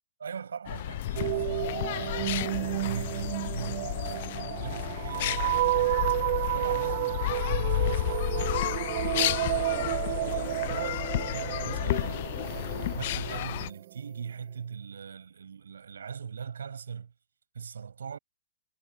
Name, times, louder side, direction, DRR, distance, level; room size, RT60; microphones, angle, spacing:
voice 1, 0.2-5.5 6.5-8.6 9.0-12.2 12.6-17.1 17.5-18.2, right 7 dB, 75° right, 7.2 m, -41 dB
sound 1, 0.7-13.7, left 16 dB, 50° left, 0.4 m, -32 dB
sound 2, 1.2-13.9, right 18 dB, 50° right, 0.3 m, -31 dB
hypercardioid pair, 115°, 0 cm